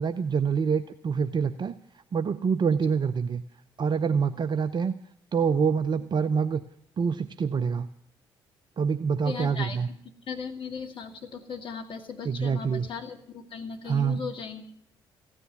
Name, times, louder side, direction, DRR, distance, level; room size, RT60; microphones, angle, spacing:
voice 1, 0.0-1.7 2.1-3.4 3.8-4.9 5.3-6.6 7.0-7.9 8.8-9.9 12.2-12.9 13.9-14.2, right 6 dB, 40° right, 11 dB, 0.7 m, -26 dB
voice 2, 9.2-9.9 10.3-14.7, left 5 dB, 45° left, 3 dB, 2.3 m, -37 dB
15.0 x 9.9 x 9.6 m, 0.66 s
figure-of-eight pair, 45°, 12 cm